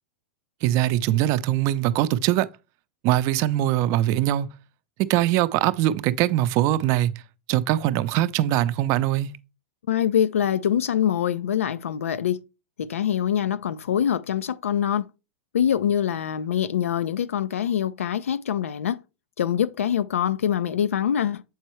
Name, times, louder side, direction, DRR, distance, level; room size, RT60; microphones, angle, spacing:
voice 1, 0.6-2.5 3.0-4.5 5.0-7.1 7.5-9.3, right 13 dB, 45° right, 0.5 m, -22 dB
voice 2, 9.9-12.4 12.8-15.1 15.5-19.0 19.4-21.4, left 9 dB, 85° left, 0.4 m, -24 dB
7.9 x 4.4 x 3.1 m
hypercardioid pair, 115°, 7 cm